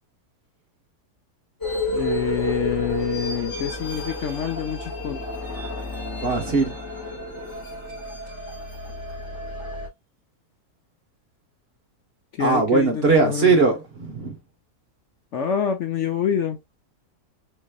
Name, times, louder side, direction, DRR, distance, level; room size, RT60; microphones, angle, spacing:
sound 1, 1.6-9.9, left 1 dB, 15° left, 1.6 m, -31 dB
voice 1, 1.9-5.2 12.4-13.5 15.3-16.6, left 8 dB, 60° left, 0.8 m, -26 dB
voice 2, 6.2-6.7 12.4-14.4, right 4 dB, 45° right, 1.1 m, -20 dB
5.2 x 4.0 x 2.3 m
omnidirectional pair, 1.7 m